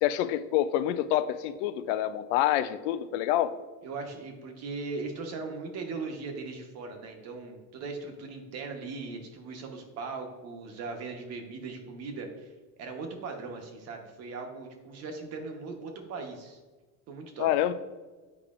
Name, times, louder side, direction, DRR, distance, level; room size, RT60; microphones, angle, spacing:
voice 1, 0.0-3.5 17.4-17.7, left 12 dB, 80° left, 13 dB, 0.5 m, -27 dB
voice 2, 3.8-12.5 12.8-16.6 17.1-17.5, right 4 dB, 50° right, 4 dB, 1.1 m, -39 dB
8.5 x 4.8 x 2.5 m, 1.3 s
cardioid pair, 135°, 34 cm